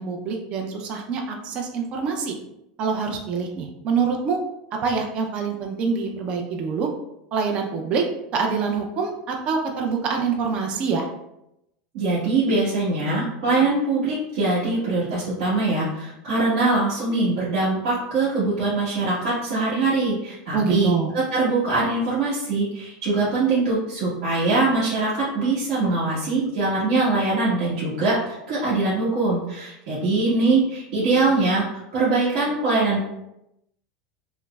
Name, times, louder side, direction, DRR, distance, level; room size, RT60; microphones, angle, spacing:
voice 1, 0.0-2.4 2.8-4.4 4.8-6.9 7.3-8.0 8.3-11.1 20.5-21.1, right 5 dB, 35° right, 2 dB, 0.5 m, -25 dB
voice 2, 11.9-31.6 31.9-33.0, right 3 dB, 60° right, -10 dB, 1.2 m, -22 dB
5.5 x 2.0 x 2.3 m, 0.84 s
supercardioid pair, 155°, 3 cm